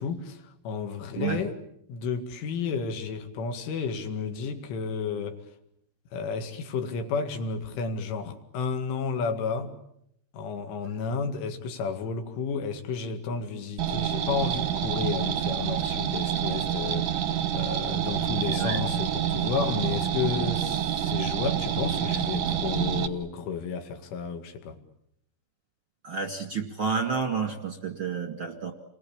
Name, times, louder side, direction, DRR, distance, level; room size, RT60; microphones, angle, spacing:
voice 1, 0.0-1.5 1.9-5.5 6.1-9.7 10.3-24.8, left 5 dB, 85° left, 6 dB, 4.7 m, -32 dB
sound 1, 13.8-23.1, right 10 dB, 70° right, 1.9 m, -28 dB
voice 2, 18.4-18.8 20.3-20.5 26.0-28.7, right 5 dB, 50° right, 4 dB, 1.5 m, -30 dB
29.5 x 22.0 x 8.8 m, 0.76 s
omnidirectional pair, 5.4 m